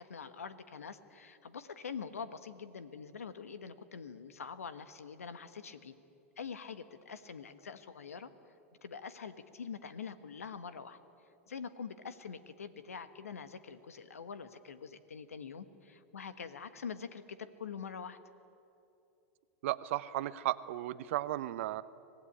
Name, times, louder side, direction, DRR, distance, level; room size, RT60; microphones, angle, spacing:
voice 1, 0.0-5.9 6.4-8.3 8.8-11.0 11.5-18.2, left 6 dB, 90° left, 12 dB, 1.3 m, -45 dB
voice 2, 19.6-21.8, right 15 dB, 65° right, 14 dB, 0.8 m, -35 dB
25.0 x 17.5 x 10.0 m, 2.8 s
hypercardioid pair, 105°, 8 cm